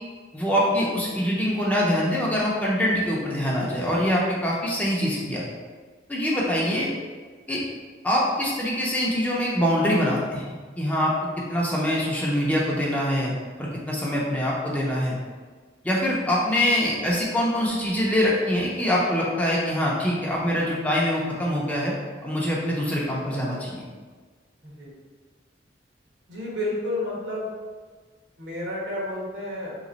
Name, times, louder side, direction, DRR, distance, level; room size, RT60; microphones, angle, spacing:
voice 1, 0.3-5.4 6.1-6.9 7.5-7.6 8.0-13.3 13.6-15.2 15.8-21.9 22.2-23.8, equal, 10° left, -5 dB, 0.6 m, -24 dB
voice 2, 24.6-24.9 26.3-27.5 28.4-29.8, left 1 dB, 65° right, -4 dB, 1.1 m, -31 dB
3.3 x 3.0 x 3.9 m, 1.5 s
head